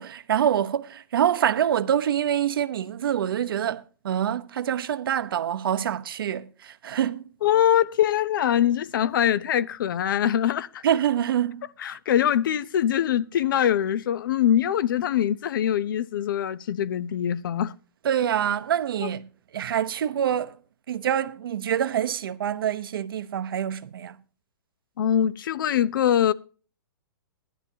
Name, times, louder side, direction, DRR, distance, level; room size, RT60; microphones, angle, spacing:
voice 1, 0.0-7.2 10.8-11.7 18.0-19.3 19.5-20.5 20.9-24.2, right 9 dB, 70° right, 0.9 m, -26 dB
voice 2, 7.4-10.8 11.8-17.7 19.0-19.1 25.0-26.3, left 10 dB, 60° left, 0.7 m, -23 dB
15.5 x 12.0 x 2.8 m
hypercardioid pair, 155°, 12 cm